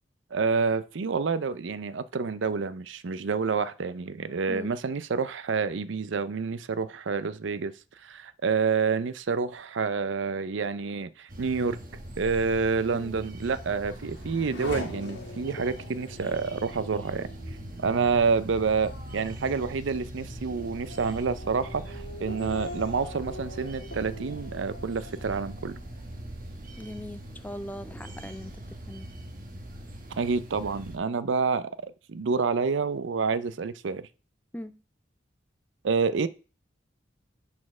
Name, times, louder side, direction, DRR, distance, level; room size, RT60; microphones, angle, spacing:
voice 1, 0.3-7.7 8.0-11.8 12.2-17.3 17.8-25.8 30.1-31.7 32.1-34.0 35.8-36.3, right 5 dB, 80° right, 0.5 m, -28 dB
sound 1, 11.3-31.0, right 1 dB, 45° right, 1.3 m, -41 dB
Race car auto racing / Accelerating revving vroom, 13.2-26.4 26.8-27.5, left 1 dB, 75° left, 1.7 m, -44 dB
voice 2, 16.1-16.8 22.4-22.5 26.8-29.1 34.5-34.8, left 1 dB, 10° left, 0.4 m, -41 dB
7.2 x 4.2 x 6.0 m
head